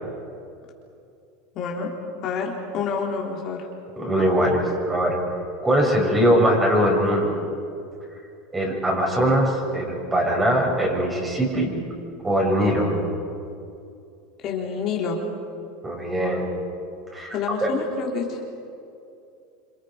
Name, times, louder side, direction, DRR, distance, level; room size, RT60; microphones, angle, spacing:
voice 1, 1.5-1.9 2.2-3.7 14.4-15.2 17.3-18.4, left 5 dB, 50° left, -1 dB, 3.9 m, -28 dB
voice 2, 4.0-5.2 5.6-7.4 8.5-11.7 12.2-12.9 15.8-16.5 17.1-17.7, equal, 15° right, -1 dB, 7.1 m, -21 dB
28.0 x 26.0 x 5.3 m, 2.6 s
supercardioid pair, 110°, 0 cm